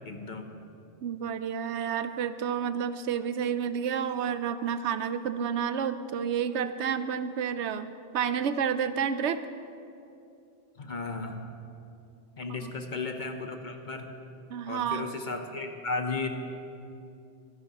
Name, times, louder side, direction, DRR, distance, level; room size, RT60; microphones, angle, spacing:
voice 1, 0.0-0.5 10.8-11.5 12.4-14.1 14.7-16.3, left 3 dB, 45° left, 5 dB, 1.0 m, -34 dB
voice 2, 1.0-9.5 12.6-12.7 14.5-15.1, right 7 dB, 75° right, 11 dB, 0.8 m, -30 dB
25.0 x 11.0 x 2.9 m, 2.6 s
omnidirectional pair, 1.2 m